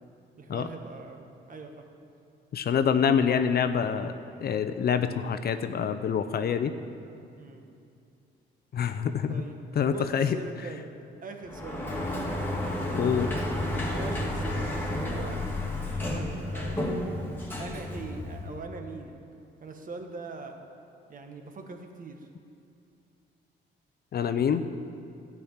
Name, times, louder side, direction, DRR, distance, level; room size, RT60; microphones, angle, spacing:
voice 1, 0.4-1.8 7.4-7.7 9.3-9.6 9.9-10.9 11.2-12.0 13.5-15.4 15.9-17.1 17.6-19.2 19.6-20.6 21.1-22.3, right 3 dB, 45° right, 4 dB, 1.5 m, -42 dB
voice 2, 2.5-4.1 4.4-6.7 8.7-9.4 9.7-10.4 12.9-13.3 24.1-24.6, left 7 dB, 50° left, 10 dB, 0.6 m, -26 dB
Sliding door, 11.4-18.6, left 1 dB, 10° left, 2.1 m, -31 dB
12.5 x 6.1 x 8.7 m, 2.5 s
cardioid pair, 90°, 20 cm